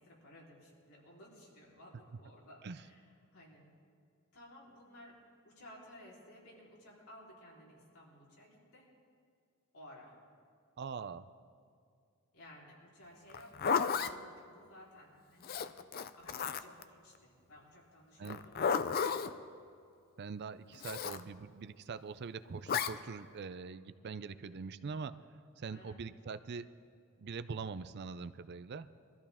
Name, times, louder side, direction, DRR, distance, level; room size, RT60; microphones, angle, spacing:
voice 1, 0.0-3.1 3.3-3.6 4.3-5.1 5.4-8.9 9.7-10.2 12.3-15.6 16.2-18.9 25.7-26.0, left 1 dB, 80° left, -5 dB, 3.9 m, -56 dB
voice 2, 10.8-11.3 18.2-18.4 20.2-25.2 25.6-26.7 27.2-28.9, right 5 dB, 50° right, 13 dB, 0.4 m, -43 dB
Zipper (clothing), 13.3-14.1 15.4-16.8 18.3-19.3 20.8-21.2 22.7-22.9, left 6 dB, 45° left, 0.4 m, -33 dB
22.5 x 14.0 x 3.6 m, 2.2 s
head